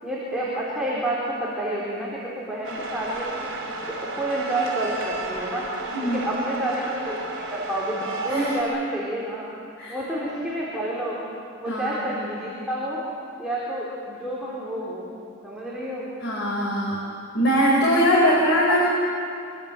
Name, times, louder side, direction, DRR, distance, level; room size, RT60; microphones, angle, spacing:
voice 1, 0.0-3.5 3.9-5.7 6.0-9.5 9.9-11.2 11.6-13.0 13.4-15.1 15.4-16.1 18.2-18.4 18.7-18.8, right 1 dB, 5° right, -7 dB, 4.1 m, -29 dB
sound 1, 2.6-8.6, right 2 dB, 65° right, 5.3 m, -33 dB
voice 2, 11.7-12.0 16.2-17.0 17.3-18.8, equal, 60° left, -5 dB, 4.9 m, -21 dB
24.5 x 23.5 x 8.1 m, 2.5 s
head